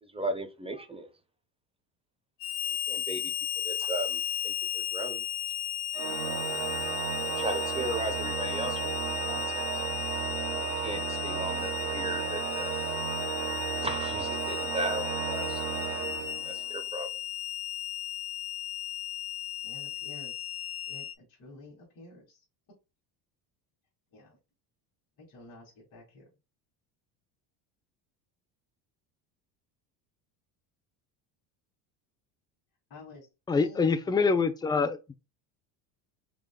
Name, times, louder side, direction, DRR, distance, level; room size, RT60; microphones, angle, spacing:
voice 1, 0.0-1.1 2.9-3.3 3.6-5.2 7.2-8.8 9.1-9.6 10.6-12.7 13.8-15.6 16.4-17.1, right 1 dB, 10° right, 0.7 m, -36 dB
Harmonica, 2.4-21.1, left 12 dB, 85° left, 0.9 m, -35 dB
Organ, 5.9-16.8, right 10 dB, 65° right, 0.8 m, -34 dB
voice 2, 19.6-20.5 20.9-22.4 24.1-24.4 25.2-26.3 32.9-33.3 33.5-34.2, left 2 dB, 45° left, 2.5 m, -50 dB
voice 3, 33.5-35.2, left 4 dB, 10° left, 0.4 m, -25 dB
4.9 x 3.6 x 2.2 m
supercardioid pair, 105°, 46 cm